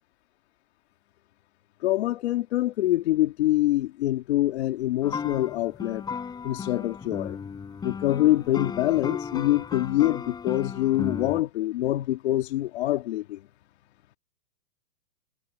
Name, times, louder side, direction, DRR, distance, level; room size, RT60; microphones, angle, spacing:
voice 1, 1.8-6.0 6.4-7.4 7.8-13.4, left 15 dB, 45° left, 2.5 m, -25 dB
sound 1, 5.0-11.4, left 6 dB, 10° left, 4.6 m, -35 dB
hypercardioid pair, 165°, 44 cm